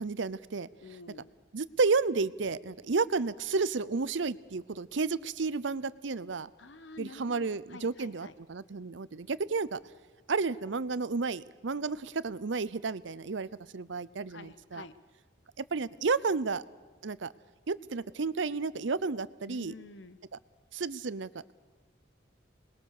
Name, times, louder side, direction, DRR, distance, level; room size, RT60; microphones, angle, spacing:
voice 1, 0.0-0.7 1.5-6.5 7.0-9.8 10.3-14.8 15.6-16.6 17.0-17.3 17.7-19.7 20.7-21.5, right 4 dB, 65° right, 18 dB, 0.7 m, -32 dB
voice 2, 0.8-1.3 6.6-8.3 14.3-14.9 19.5-20.2, left 3 dB, 65° left, 14 dB, 1.1 m, -49 dB
27.0 x 21.0 x 6.6 m, 1.4 s
head